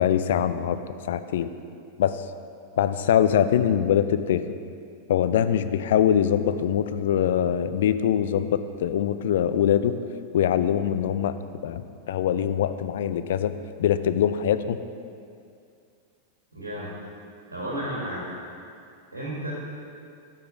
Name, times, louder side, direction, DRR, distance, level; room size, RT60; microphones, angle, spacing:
voice 1, 0.0-1.5 2.0-2.2 2.8-4.4 5.1-9.9 10.3-11.3 11.6-13.5 13.8-14.8, left 9 dB, 65° left, 12 dB, 0.4 m, -23 dB
voice 2, 16.5-16.9 17.5-18.3 19.1-19.5, right 1 dB, 85° right, -5 dB, 1.8 m, -32 dB
8.0 x 7.0 x 5.0 m, 2.4 s
figure-of-eight pair, 90°, 0 cm